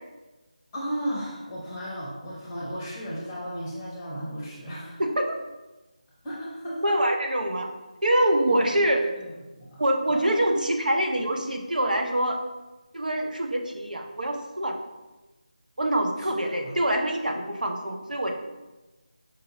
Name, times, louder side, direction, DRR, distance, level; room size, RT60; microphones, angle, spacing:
voice 1, 0.7-5.0 6.2-7.0 8.5-8.7 9.2-9.8 10.1-10.4 16.2-16.8, equal, 10° left, -6 dB, 0.7 m, -35 dB
voice 2, 6.8-7.7 8.0-9.0 9.8-12.4 12.9-14.7 15.8-18.4, right 1 dB, 85° right, 4 dB, 0.7 m, -25 dB
5.3 x 2.5 x 4.0 m, 1.1 s
figure-of-eight pair, 170°, 4 cm